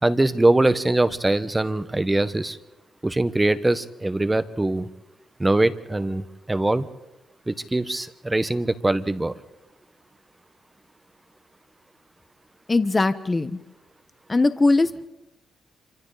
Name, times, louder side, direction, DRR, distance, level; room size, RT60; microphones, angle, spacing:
voice 1, 0.0-2.6 3.0-4.9 5.4-6.9 7.5-9.3, right 2 dB, 15° right, 12 dB, 1.1 m, -22 dB
voice 2, 12.7-13.5 14.3-15.0, left 3 dB, 25° left, 11 dB, 1.2 m, -20 dB
26.5 x 25.5 x 4.2 m, 0.96 s
cardioid pair, 90°, 0 cm